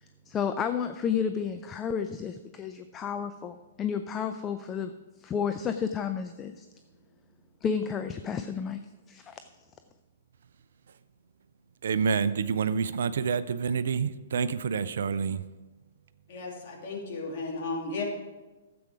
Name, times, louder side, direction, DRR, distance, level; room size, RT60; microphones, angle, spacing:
voice 1, 0.3-4.9 5.2-6.7 7.6-8.8 9.1-9.4, left 7 dB, 20° left, 8 dB, 0.5 m, -31 dB
voice 2, 11.8-15.4, right 6 dB, 55° right, 14 dB, 0.5 m, -28 dB
voice 3, 16.3-18.0, left 3 dB, 40° left, -2 dB, 2.9 m, -34 dB
14.0 x 7.8 x 4.8 m, 1.2 s
figure-of-eight pair, 115°, 0 cm